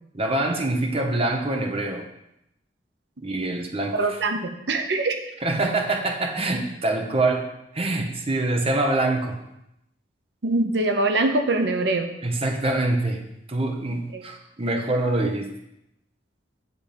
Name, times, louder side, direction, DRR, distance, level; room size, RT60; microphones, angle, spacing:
voice 1, 0.1-2.0 3.2-4.1 5.4-9.4 12.2-15.5, right 2 dB, 35° right, 3 dB, 1.0 m, -25 dB
voice 2, 3.9-5.2 10.4-12.1 14.1-14.2, right 2 dB, 75° right, 5 dB, 0.8 m, -23 dB
9.4 x 3.8 x 6.9 m, 0.83 s
head